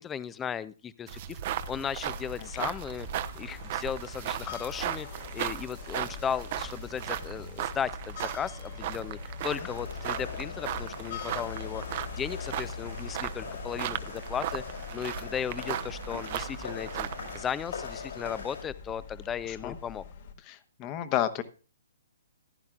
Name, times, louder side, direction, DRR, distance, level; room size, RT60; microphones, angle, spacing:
voice 1, 0.0-3.1 3.4-17.1 17.3-20.0, left 8 dB, 15° left, 18 dB, 0.4 m, -36 dB
sound 1, 1.1-17.4, right 12 dB, 45° right, 0.7 m, -37 dB
sound 2, 1.5-20.3, left 5 dB, 55° left, 1.8 m, -43 dB
sound 3, 9.4-18.6, left 5 dB, 70° left, 5.3 m, -42 dB
voice 2, 20.4-21.4, left 12 dB, 30° left, 12 dB, 1.0 m, -31 dB
15.0 x 10.5 x 2.4 m, 0.34 s
hypercardioid pair, 135°, 0 cm